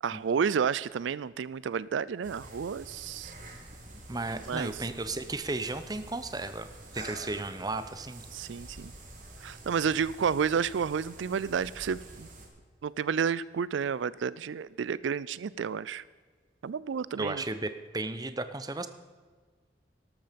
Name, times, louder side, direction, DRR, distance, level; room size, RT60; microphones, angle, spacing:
voice 1, 0.0-3.3 4.5-4.8 8.3-8.9 9.4-12.3 12.8-16.0 16.6-17.4, right 6 dB, 85° right, 19 dB, 0.4 m, -31 dB
sound 1, 2.2-12.5, right 1 dB, 45° right, 2.6 m, -47 dB
voice 2, 3.9-6.7 6.9-8.2 17.2-18.9, right 2 dB, 20° right, 11 dB, 0.8 m, -34 dB
13.5 x 12.5 x 5.2 m, 1.5 s
head